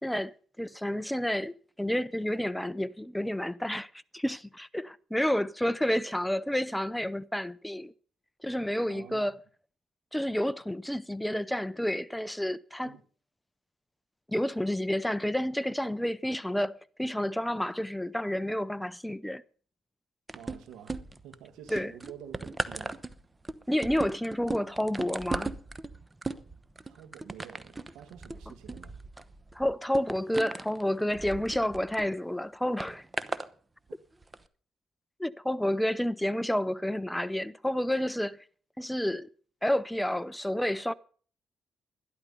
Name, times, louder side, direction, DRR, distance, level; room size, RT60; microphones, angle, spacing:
voice 1, 0.0-7.9 8.4-9.3 10.1-12.9 14.3-19.4 21.7-21.9 23.7-25.6 29.5-33.0 35.2-38.4 38.8-39.3 39.6-40.9, left 1 dB, 5° left, 0.5 m, -30 dB
voice 2, 8.9-9.3 12.9-13.0 20.3-23.0 26.8-29.0 33.9-34.0, right 9 dB, 90° right, 1.9 m, -49 dB
sound 1, 20.3-21.3 21.7-32.1 32.8-33.5 34.2-34.4, right 3 dB, 20° right, 0.9 m, -37 dB
12.0 x 12.0 x 5.5 m
cardioid pair, 90°, 0 cm